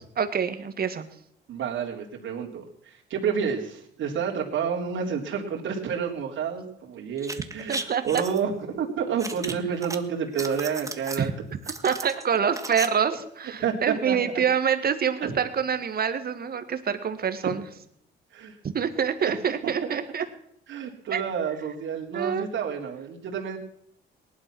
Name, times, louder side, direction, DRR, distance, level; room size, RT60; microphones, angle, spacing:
voice 1, 0.2-1.1 7.7-8.0 11.2-11.3 11.8-17.6 18.7-20.2 21.1-21.2 22.1-22.4, right 7 dB, 50° right, 10 dB, 1.8 m, -26 dB
voice 2, 1.5-11.3 13.6-14.2 15.2-15.4 18.3-18.6 19.2-19.3 19.6-20.0 20.7-23.6, right 7 dB, 75° right, 0 dB, 3.7 m, -29 dB
sound 1, 7.2-8.4 9.2-10.0 10.3-11.2 11.6-12.9 13.1-13.2, right 2 dB, 15° right, 1.6 m, -35 dB
18.5 x 11.5 x 6.2 m, 0.72 s
cardioid pair, 90°, 20 cm